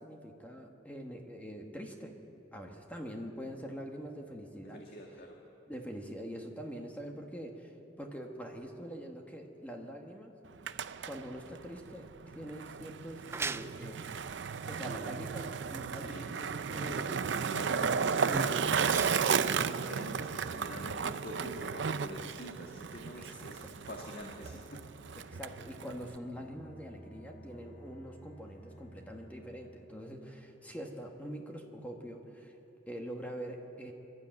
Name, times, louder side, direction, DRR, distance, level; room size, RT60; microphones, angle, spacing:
voice 1, 0.0-2.1 2.5-4.8 5.7-10.3 11.0-14.1 14.7-18.5 20.7-21.0 23.4-23.5 25.3-32.6 32.9-33.9, equal, 10° left, 2 dB, 1.5 m, -44 dB
voice 2, 4.6-5.4 15.9-16.3 17.5-24.9, equal, 55° left, 0 dB, 1.9 m, -46 dB
Skateboard, 10.4-26.2, right 6 dB, 80° right, 0.6 m, -34 dB
sound 1, 13.0-20.4, right 3 dB, 15° right, 0.4 m, -43 dB
Bowed string instrument, 26.2-30.2, right 1 dB, 80° left, 3.4 m, -54 dB
25.5 x 12.0 x 9.0 m, 2.9 s
head